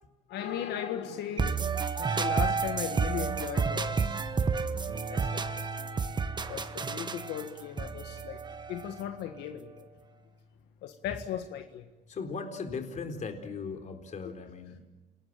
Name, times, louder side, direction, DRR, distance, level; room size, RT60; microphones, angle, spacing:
voice 1, 0.3-4.5 4.9-5.4 6.5-8.4 8.7-9.8 10.8-11.9, left 10 dB, 80° left, 6 dB, 1.7 m, -37 dB
sound 1, 1.4-9.2, right 5 dB, 25° right, 1.3 m, -31 dB
sound 2, 4.9-11.9, equal, 80° right, 2.7 m, -48 dB
voice 2, 12.1-14.8, left 4 dB, 45° left, 6 dB, 4.0 m, -38 dB
29.0 x 19.5 x 9.1 m, 1.2 s
cardioid pair, 110°, 17 cm